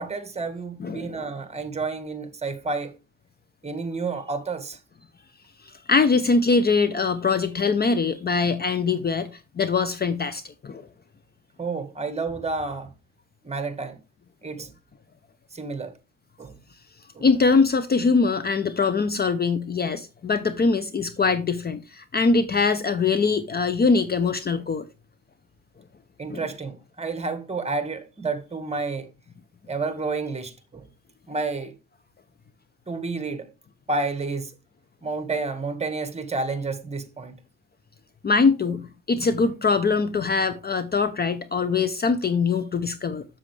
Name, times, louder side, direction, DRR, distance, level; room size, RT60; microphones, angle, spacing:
voice 1, 0.0-2.9 3.6-4.8 11.6-12.9 13.4-14.0 14.4-14.7 15.5-15.9 16.4-16.5 17.1-17.2 26.2-29.1 29.7-30.9 31.3-31.7 32.9-33.5 33.9-34.5 35.0-37.3 38.7-38.8, right 3 dB, 20° right, 1.6 m, -30 dB
voice 2, 0.8-1.2 5.6-9.3 9.6-10.9 17.2-24.8 26.3-26.5 38.2-43.2, left 4 dB, 30° left, 0.7 m, -22 dB
7.4 x 7.2 x 3.3 m
cardioid pair, 90°, 30 cm